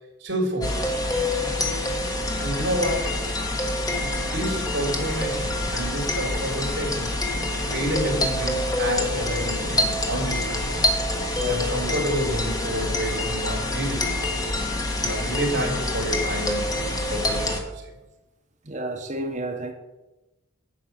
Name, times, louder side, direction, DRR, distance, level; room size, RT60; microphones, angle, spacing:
voice 1, 0.2-0.8 2.4-3.1 4.0-7.2 7.7-10.9 11.5-14.1 15.0-16.8 17.1-17.8, right 1 dB, 65° right, 3.4 m, -29 dB
sound 1, 0.6-17.6, left 2 dB, 20° left, 1.3 m, -26 dB
voice 2, 11.4-11.7 18.6-19.7, right 2 dB, 35° right, 1.0 m, -31 dB
9.3 x 5.8 x 7.8 m
head